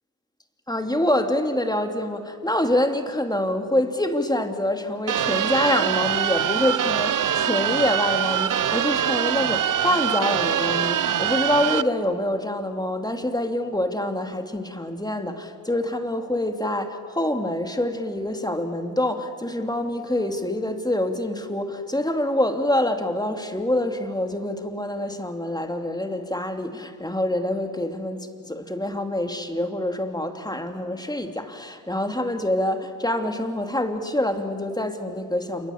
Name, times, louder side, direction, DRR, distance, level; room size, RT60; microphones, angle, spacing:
voice 1, 0.7-35.7, left 1 dB, 10° left, 5 dB, 2.7 m, -26 dB
sound 1, 5.1-11.8, right 10 dB, 40° right, 0.8 m, -23 dB
28.0 x 23.5 x 7.2 m, 2.4 s
supercardioid pair, 65°, 49 cm